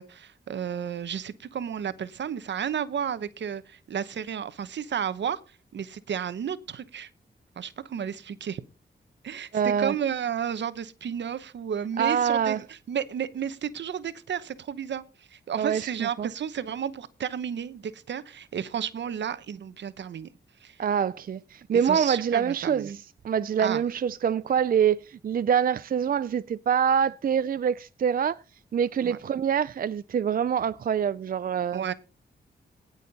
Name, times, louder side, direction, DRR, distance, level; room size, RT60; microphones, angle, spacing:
voice 1, 0.0-5.4 5.7-7.1 7.6-8.6 9.2-20.3 20.6-20.8 21.7-22.9 23.6-23.8 29.0-29.2 31.7-31.9, right 8 dB, 75° right, 0.9 m, -32 dB
voice 2, 9.5-9.9 12.0-12.6 15.6-15.9 16.2-16.3 20.8-28.4 28.7-31.8, right 8 dB, 50° right, 0.4 m, -25 dB
18.0 x 6.4 x 4.1 m
cardioid pair, 85°, 18 cm